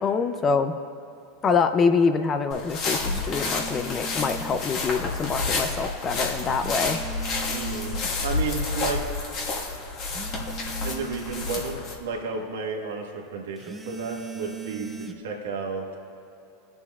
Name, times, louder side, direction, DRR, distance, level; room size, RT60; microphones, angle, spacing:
voice 1, 0.0-0.7 1.4-7.0, left 5 dB, 30° left, 8 dB, 0.5 m, -25 dB
sound 1, 2.5-11.9, left 3 dB, 50° left, 1.5 m, -30 dB
sound 2, 3.0-4.7 6.5-8.2 10.0-11.8 13.6-15.1, right 5 dB, 15° right, 0.6 m, -39 dB
voice 2, 7.5-9.0 10.8-15.8, right 4 dB, 80° right, 1 dB, 1.4 m, -32 dB
20.5 x 7.0 x 2.4 m, 2.8 s
hypercardioid pair, 105°, 0 cm